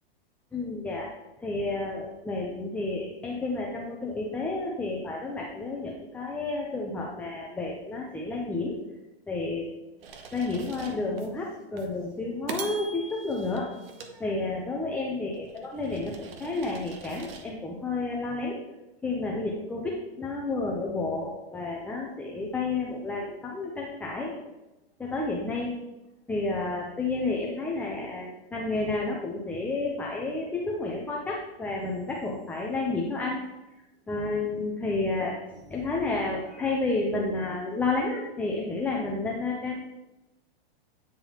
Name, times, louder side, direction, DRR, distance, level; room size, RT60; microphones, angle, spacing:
voice 1, 0.5-1.1 1.4-8.8 9.3-9.7 10.3-13.7 14.2-18.6 19.0-24.4 25.0-25.8 26.3-33.4 34.1-39.8, left 3 dB, 5° left, -2 dB, 0.5 m, -31 dB
sound 1, 10.0-11.3 11.8-11.9 12.5-14.8 15.3-17.5, right 4 dB, 70° right, 1.0 m, -42 dB
8.9 x 3.8 x 2.9 m, 1.0 s
hypercardioid pair, 130°, 30 cm